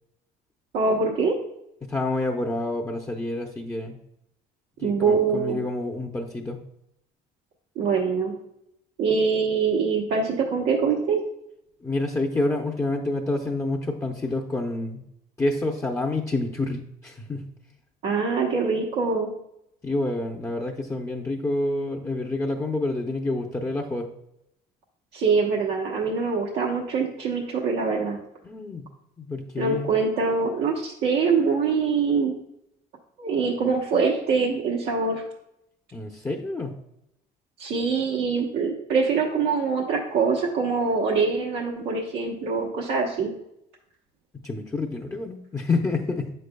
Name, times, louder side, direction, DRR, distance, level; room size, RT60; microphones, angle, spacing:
voice 1, 0.7-1.3 4.8-5.6 7.8-8.3 9.0-11.2 18.0-19.3 25.1-28.2 29.6-32.3 33.2-35.2 37.6-43.3, right 5 dB, 90° right, -3 dB, 1.0 m, -24 dB
voice 2, 1.8-3.9 4.8-6.6 11.8-15.0 15.4-17.5 19.8-24.1 28.4-28.8 29.2-29.9 35.9-36.7 44.3-46.3, left 2 dB, 15° left, 1 dB, 0.7 m, -28 dB
7.7 x 6.5 x 2.2 m, 0.80 s
cardioid pair, 110°, 17 cm